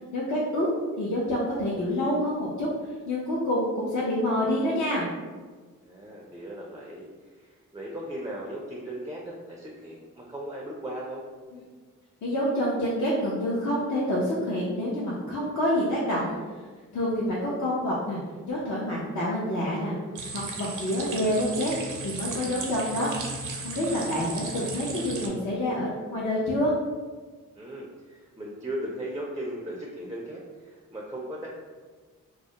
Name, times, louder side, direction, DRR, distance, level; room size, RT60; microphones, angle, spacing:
voice 1, 0.1-0.7 1.0-2.7 3.1-5.1 12.2-16.3 16.9-18.2 18.5-19.9 20.3-21.7 22.0-23.1 23.6-26.7, left 1 dB, 60° left, -7 dB, 0.6 m, -27 dB
voice 2, 5.8-11.2 27.6-31.5, right 1 dB, 10° right, -2 dB, 0.4 m, -37 dB
sound 1, 20.2-25.3, right 3 dB, 65° right, 0.5 m, -36 dB
2.3 x 2.0 x 2.8 m, 1.4 s
cardioid pair, 50°, 33 cm